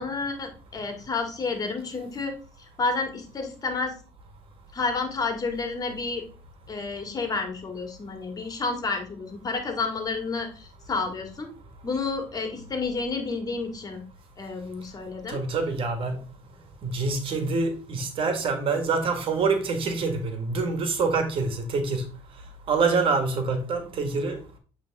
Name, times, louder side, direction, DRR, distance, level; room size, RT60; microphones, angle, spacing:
voice 1, 0.0-2.3 2.8-3.9 4.7-6.2 6.7-11.5 11.8-14.0 14.4-15.4, left 4 dB, 35° left, 2.0 m, -30 dB
voice 2, 15.3-16.2 16.8-22.0 22.7-24.4, right 4 dB, 60° right, 1.6 m, -26 dB
8.1 x 3.5 x 3.5 m
supercardioid pair, 75°, 11 cm